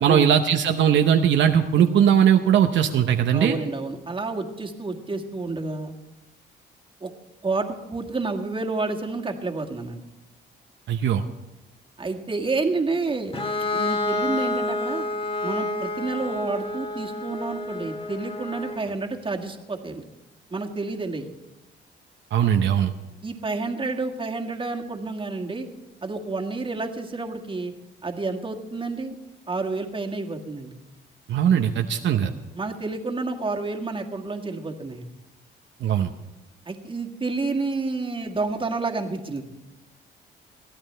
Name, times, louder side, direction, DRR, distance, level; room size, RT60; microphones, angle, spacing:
voice 1, 0.0-3.6 10.9-11.2 22.3-22.9 31.3-32.3 35.8-36.1, right 9 dB, 70° right, 5 dB, 0.8 m, -19 dB
voice 2, 3.3-6.0 7.0-7.1 7.4-10.0 12.0-13.4 13.7-15.1 15.4-20.0 20.5-21.3 23.2-25.7 26.0-27.7 28.0-29.2 29.5-30.7 32.6-35.1 36.7-39.4, right 3 dB, 25° right, 2 dB, 1.8 m, -29 dB
Bowed string instrument, 13.3-18.9, left 2 dB, 25° left, 1.7 m, -29 dB
22.0 x 14.0 x 3.3 m, 0.99 s
cardioid pair, 90°, 20 cm